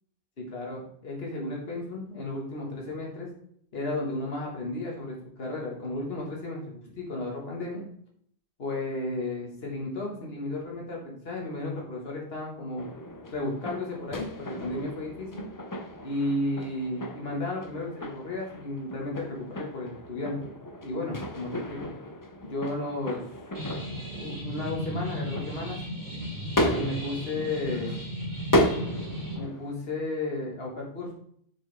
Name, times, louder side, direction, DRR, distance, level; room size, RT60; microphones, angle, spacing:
voice 1, 0.4-3.3 3.7-7.8 8.6-12.9 13.3-15.4 16.0-20.5 20.8-21.9 22.5-23.3 24.1-25.8 26.7-28.0 29.4-31.1, left 2 dB, 70° left, -1 dB, 1.9 m, -33 dB
sound 1, 12.8-29.7, equal, 20° left, 0.7 m, -34 dB
sound 2, 23.5-29.3, equal, 55° right, 3.6 m, -35 dB
6.7 x 6.6 x 3.4 m, 0.65 s
omnidirectional pair, 1.1 m